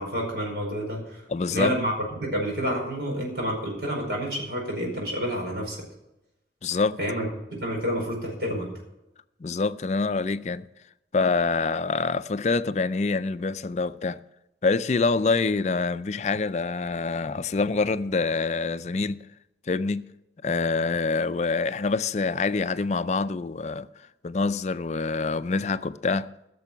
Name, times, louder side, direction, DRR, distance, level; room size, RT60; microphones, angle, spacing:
voice 1, 0.0-1.2 1.5-1.9 2.2-5.8 7.0-7.3 7.6-8.7, equal, 65° right, 4.9 m, -29 dB
voice 2, 1.3-1.7 6.6-7.0 9.4-10.7 11.1-14.2 14.6-19.2 19.7-20.1 20.4-23.9 24.2-26.5, left 4 dB, 40° left, 0.4 m, -26 dB
15.0 x 6.8 x 7.0 m
head